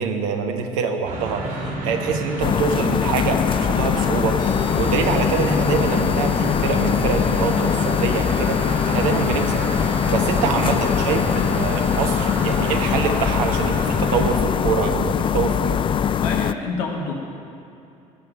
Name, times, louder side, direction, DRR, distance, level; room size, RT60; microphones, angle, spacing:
voice 1, 0.0-15.8, right 6 dB, 70° right, 5 dB, 1.2 m, -25 dB
sound 1, 1.0-14.3, right 1 dB, 50° right, 2.9 m, -30 dB
sound 2, 2.4-16.5, left 8 dB, 30° left, 0.4 m, -22 dB
sound 3, 4.4-13.7, left 2 dB, 50° left, 2.5 m, -36 dB
voice 2, 16.1-17.1, left 4 dB, 65° left, 1 dB, 1.5 m, -27 dB
14.0 x 5.9 x 8.7 m, 2.6 s
figure-of-eight pair, 60°, 18 cm